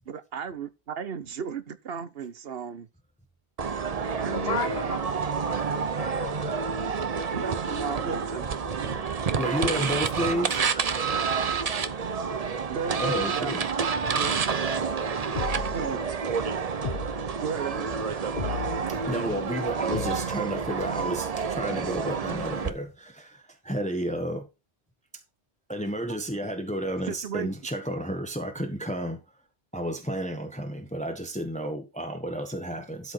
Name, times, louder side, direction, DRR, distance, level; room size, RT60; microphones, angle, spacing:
voice 1, 0.1-2.9 4.1-5.0 7.3-9.1 9.7-9.8 12.7-13.5 14.0-14.5 15.7-16.0 17.4-18.0 27.1-27.5 28.7-28.8, right 6 dB, 60° right, 1.1 m, -35 dB
sound 1, 3.6-22.7, right 5 dB, 40° right, 0.7 m, -29 dB
voice 2, 4.3-5.0 5.3-6.6, left 7 dB, 65° left, 1.1 m, -35 dB
voice 3, 9.4-10.6 13.0-13.7 14.8-14.9 18.9-24.5 25.7-29.2 29.7-33.1, equal, 5° left, 1.3 m, -31 dB
sound 2, 15.3-16.0 16.8-17.4 18.4-19.0 19.9-20.5, left 6 dB, 45° left, 1.1 m, -35 dB
12.0 x 5.0 x 4.3 m
omnidirectional pair, 1.1 m